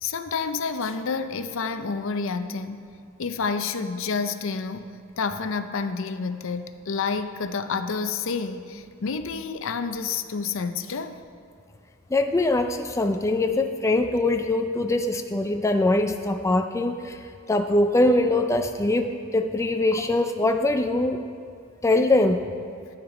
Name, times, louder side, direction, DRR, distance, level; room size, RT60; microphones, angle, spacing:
voice 1, 0.0-2.9 3.2-4.9 5.2-11.2, left 5 dB, 65° left, 10 dB, 0.5 m, -29 dB
voice 2, 12.1-17.2 17.5-21.2 21.8-22.4, left 2 dB, 15° left, 6 dB, 0.4 m, -22 dB
12.0 x 8.9 x 4.9 m, 2.2 s
head